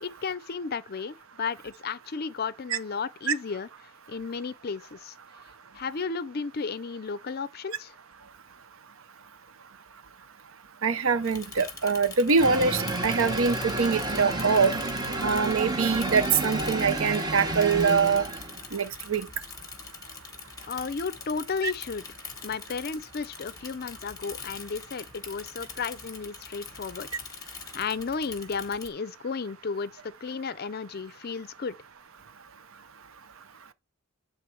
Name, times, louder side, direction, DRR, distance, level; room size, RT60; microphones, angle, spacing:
voice 1, 0.0-3.7 4.1-5.1 5.7-7.9 20.7-22.1 22.4-27.1 27.7-31.8, left 5 dB, 45° left, 0.5 m, -33 dB
voice 2, 10.8-14.7 15.2-18.2 18.7-19.3, right 5 dB, 65° right, 0.7 m, -24 dB
Bicycle / Mechanisms, 11.2-28.9, left 5 dB, 15° left, 1.2 m, -44 dB
sound 1, 12.4-18.7, right 2 dB, 20° right, 1.0 m, -30 dB
8.4 x 3.6 x 4.5 m
head